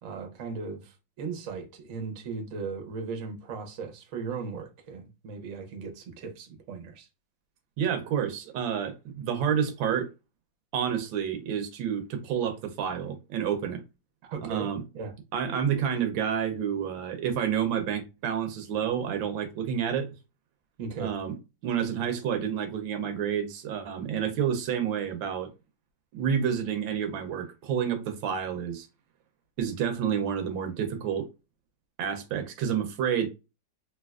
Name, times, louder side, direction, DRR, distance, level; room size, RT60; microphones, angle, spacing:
voice 1, 0.0-7.1 14.2-14.7 14.9-15.1 20.8-21.1, right 5 dB, 60° right, 0.9 m, -37 dB
voice 2, 7.8-10.1 10.7-13.8 14.4-14.8 15.3-20.1 21.0-21.4 21.6-25.5 26.1-28.9 29.6-31.3 32.0-33.3, right 8 dB, 80° right, 1.3 m, -29 dB
3.3 x 2.6 x 2.3 m
omnidirectional pair, 2.1 m